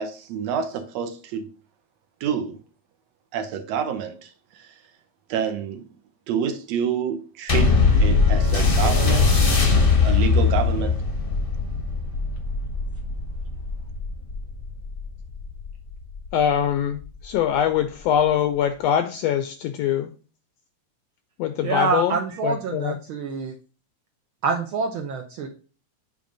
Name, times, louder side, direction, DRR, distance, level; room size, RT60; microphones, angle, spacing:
voice 1, 0.0-1.5 2.2-2.6 3.3-4.7 5.3-5.8 6.3-9.4 10.0-10.9, right 7 dB, 70° right, 1.8 m, -28 dB
sound 1, 7.5-16.3 17.0-17.1, left 4 dB, 55° left, 0.6 m, -21 dB
voice 2, 16.3-20.1 21.4-23.0, left 9 dB, 80° left, 1.5 m, -23 dB
voice 3, 21.6-23.5 24.4-25.5, right 4 dB, 90° right, 1.1 m, -26 dB
8.8 x 3.3 x 5.2 m
omnidirectional pair, 3.4 m